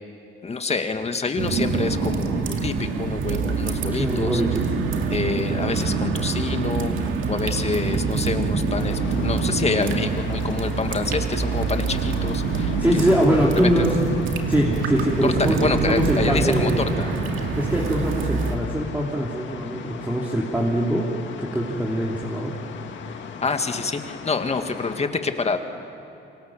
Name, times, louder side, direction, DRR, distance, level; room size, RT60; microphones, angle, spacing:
voice 1, 0.4-4.4 5.1-13.0 13.6-14.0 15.2-15.3 15.6-17.2 23.4-25.6, left 4 dB, 30° left, 6 dB, 2.0 m, -27 dB
sound 1, 1.4-18.6, right 4 dB, 85° right, 2.4 m, -25 dB
voice 2, 3.9-4.6 12.8-13.9 14.5-15.6 15.9-16.8 17.6-21.1 21.4-22.6, equal, 10° right, -2 dB, 3.2 m, -23 dB
sound 2, 8.7-25.1, left 7 dB, 70° left, 2.1 m, -38 dB
29.0 x 25.5 x 7.4 m, 2.9 s
cardioid pair, 90°, 20 cm